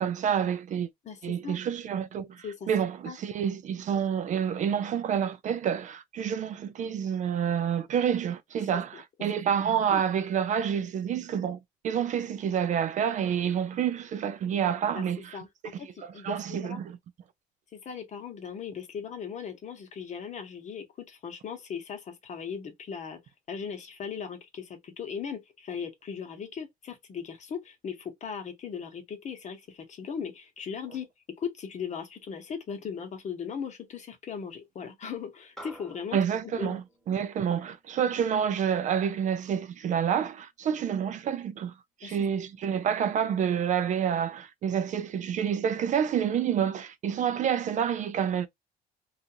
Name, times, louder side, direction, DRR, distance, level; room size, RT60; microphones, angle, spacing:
voice 1, 0.0-0.9 1.2-11.6 11.8-15.4 16.0-17.0 36.1-41.7 42.0-48.5, right 8 dB, 45° right, 0.4 m, -28 dB
voice 2, 1.0-1.6 2.4-2.7 3.0-3.2 8.9-9.0 9.9-10.0 14.9-15.0 15.3-16.8 17.7-23.2 23.5-31.1 31.4-36.8 42.0-42.2, left 7 dB, 45° left, 0.9 m, -38 dB
sound 1, 35.6-40.2, right 1 dB, ahead, 1.0 m, -53 dB
2.5 x 2.4 x 2.7 m
cardioid pair, 110°, 17 cm